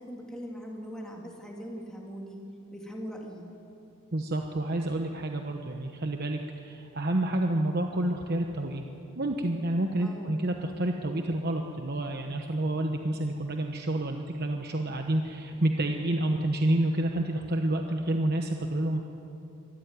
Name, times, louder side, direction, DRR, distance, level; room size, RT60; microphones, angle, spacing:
voice 1, 0.0-2.4 2.7-3.5 10.0-10.3, equal, 5° left, -2 dB, 2.5 m, -40 dB
voice 2, 4.1-8.8 9.2-19.0, right 1 dB, 45° right, 3 dB, 1.1 m, -29 dB
24.0 x 14.0 x 9.6 m, 2.8 s
head